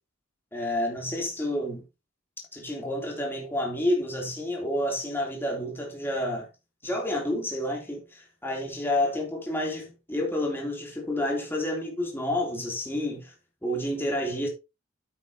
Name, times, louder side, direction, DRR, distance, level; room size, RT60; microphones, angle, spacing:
voice 1, 0.5-1.8 2.5-6.5 6.8-13.3 13.6-14.5, left 1 dB, 10° left, 3.3 m, -29 dB
9.6 x 8.6 x 3.0 m
head